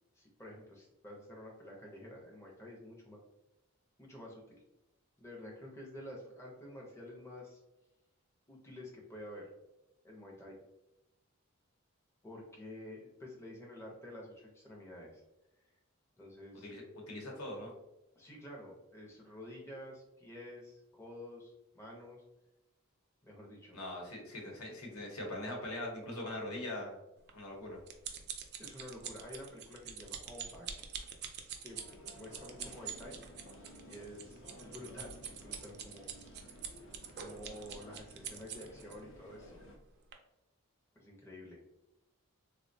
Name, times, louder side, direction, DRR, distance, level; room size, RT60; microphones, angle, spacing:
voice 1, 0.1-3.2 4.0-4.6 5.2-7.6 8.5-9.5 10.0-10.6 12.2-15.2 16.2-16.7 18.2-22.2 23.2-23.8 28.6-30.9 31.6-31.8 32.1-33.2 33.8-36.1 37.2-39.6 40.9-41.6, left 1 dB, 10° left, -2 dB, 0.5 m, -50 dB
voice 2, 16.5-17.7 23.7-27.0 27.3-27.8, left 1 dB, 80° left, -1 dB, 0.9 m, -42 dB
sound 1, 27.3-39.0 39.6-39.8 40.1-40.2, right 8 dB, 50° right, 0.3 m, -45 dB
sound 2, 31.7-39.8, equal, 60° left, 0.5 m, -55 dB
3.4 x 2.1 x 2.5 m, 0.93 s
head